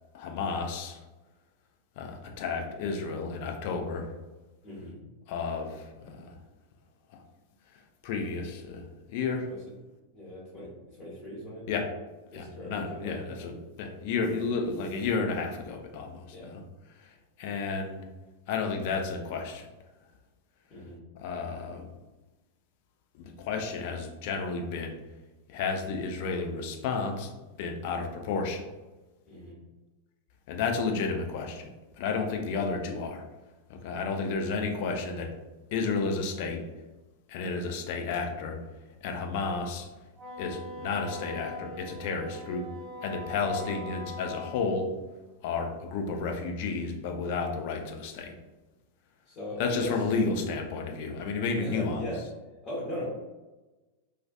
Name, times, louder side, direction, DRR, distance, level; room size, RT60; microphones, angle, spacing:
voice 1, 0.1-1.0 2.0-4.1 5.3-6.4 8.0-9.5 11.7-11.9 12.3-16.6 17.0-17.1 17.4-18.0 18.5-19.7 21.1-21.8 23.1-25.0 25.5-27.3 27.6-28.6 30.5-31.7 32.0-33.2 33.7-35.3 35.7-36.6 37.3-38.6 39.0-39.9 40.4-42.7 43.0-44.9 45.4-48.3 49.6-52.0, left 4 dB, 50° left, 3 dB, 0.3 m, -32 dB
voice 2, 4.6-5.0 9.4-9.6 10.1-11.6 12.3-13.5 16.3-16.5 20.7-21.0 29.3-29.6 43.5-43.7 49.3-49.9 51.6-52.2 52.6-53.1, left 1 dB, 30° left, -6 dB, 0.8 m, -39 dB
Wind instrument woodwind instrument, 40.2-44.7, left 2 dB, 20° right, 0.8 m, -41 dB
2.3 x 2.3 x 2.3 m, 1.1 s
figure-of-eight pair, 90°, 0 cm